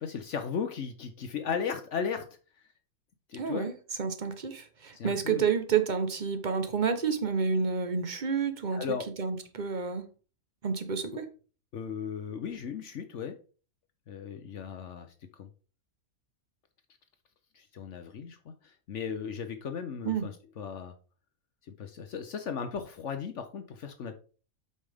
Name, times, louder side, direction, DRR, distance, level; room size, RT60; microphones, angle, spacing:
voice 1, 0.0-2.3 3.3-3.7 4.9-5.4 8.7-9.1 11.1-11.2 11.7-13.4 14.1-15.5 17.5-20.9 21.6-24.2, left 6 dB, 60° left, 1.0 m, -36 dB
voice 2, 3.4-3.7 4.0-8.8 9.2-10.1 10.6-11.2 20.0-20.3, right 6 dB, 35° right, 1.0 m, -29 dB
8.3 x 5.6 x 3.5 m
omnidirectional pair, 1.5 m